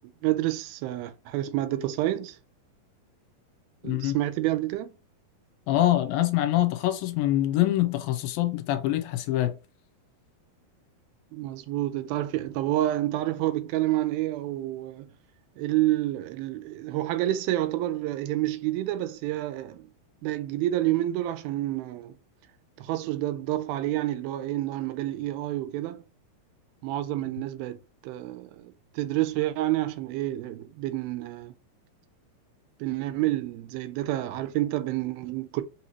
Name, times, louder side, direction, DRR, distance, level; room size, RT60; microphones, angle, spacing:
voice 1, 0.2-2.4 3.8-4.9 11.3-15.1 15.6-19.9 20.2-22.2 22.8-26.0 26.8-27.8 28.0-31.5 32.8-35.6, right 15 dB, 90° right, 2.4 m, -29 dB
voice 2, 3.8-4.2 5.7-9.6, left 14 dB, 80° left, 2.3 m, -25 dB
5.5 x 2.8 x 2.9 m
omnidirectional pair, 4.2 m